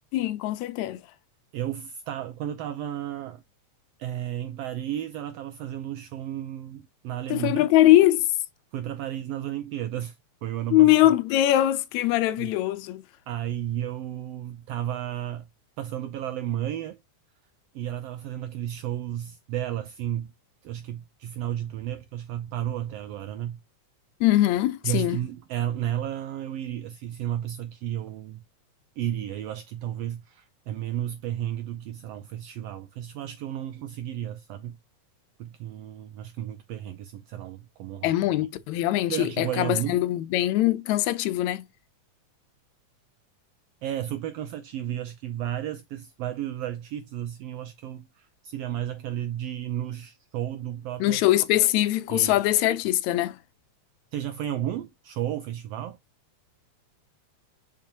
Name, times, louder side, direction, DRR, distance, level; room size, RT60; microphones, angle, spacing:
voice 1, 0.1-1.0 7.3-8.3 10.7-13.0 24.2-25.2 38.0-41.6 51.0-53.4, left 14 dB, 80° left, 1.8 m, -22 dB
voice 2, 1.5-3.4 4.0-7.7 8.7-10.2 10.4-10.9 12.4-12.5 13.3-15.5 15.8-17.0 17.7-20.3 20.6-23.6 24.8-28.4 29.0-34.8 35.4-38.1 38.4-38.5 39.1-40.0 43.8-51.2 52.1-52.4 54.1-56.0, right 11 dB, 85° right, 1.4 m, -33 dB
7.0 x 5.4 x 2.8 m
omnidirectional pair, 3.4 m